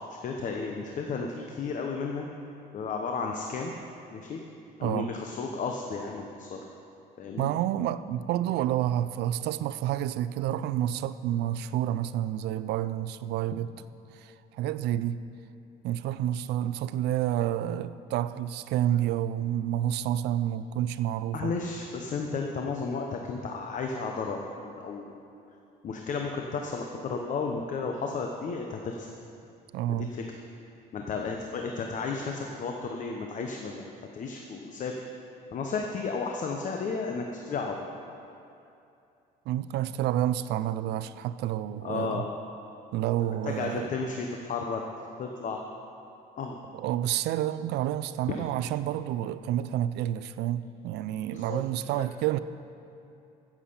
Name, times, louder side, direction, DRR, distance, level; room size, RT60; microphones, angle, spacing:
voice 1, 0.1-2.2 2.7-3.7 4.1-4.4 4.8-6.6 7.2-7.5 21.3-25.2 25.8-29.1 29.9-30.2 30.9-35.0 35.5-37.9 41.8-42.3 43.4-44.8 45.2-45.6 46.4-46.6 51.3-51.6 51.9-52.0, left 4 dB, 50° left, 2 dB, 1.0 m, -33 dB
voice 2, 7.4-13.7 14.1-15.2 15.8-21.5 29.7-30.1 39.5-42.2 42.9-43.9 46.7-52.4, right 12 dB, 80° right, 14 dB, 0.5 m, -29 dB
15.5 x 7.4 x 5.6 m, 2.7 s
cardioid pair, 110°, 17 cm